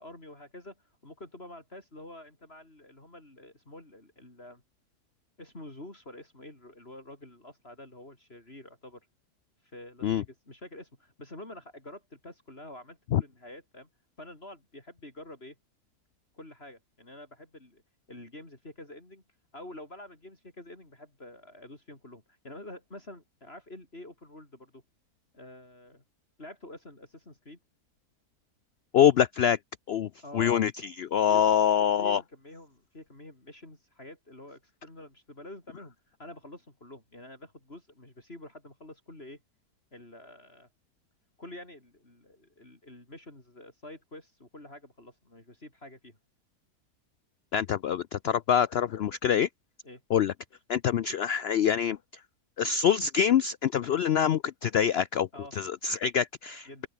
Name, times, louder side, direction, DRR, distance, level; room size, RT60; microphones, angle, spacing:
voice 1, 0.0-4.6 5.4-9.0 9.7-13.9 14.2-15.6 16.3-17.8 18.1-19.2 19.5-24.8 25.3-26.0 26.4-27.6 30.2-30.6 31.3-31.5 32.0-39.4 39.9-40.7 41.4-46.2 49.8-50.0 55.3-55.5 56.7-56.9, left 1 dB, 40° left, 5.3 m, -47 dB
voice 2, 28.9-29.6 29.9-30.7 31.0-32.2 47.5-49.5 50.1-50.3 50.7-52.0 52.6-56.9, left 8 dB, 85° left, 0.5 m, -25 dB
open air
omnidirectional pair, 1.7 m